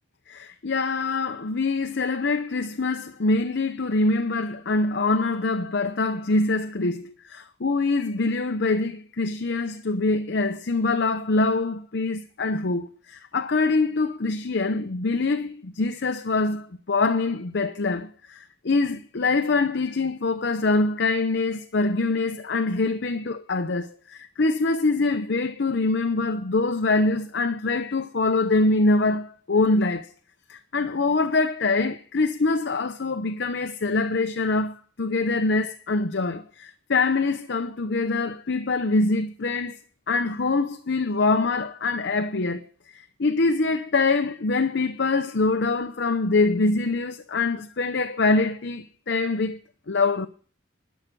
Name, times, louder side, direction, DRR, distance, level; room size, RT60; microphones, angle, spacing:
voice 1, 0.3-30.1 30.5-39.8 40.1-42.7 42.9-49.6 49.9-50.3, left 3 dB, 60° left, 0.7 m, -24 dB
12.0 x 6.4 x 8.9 m
head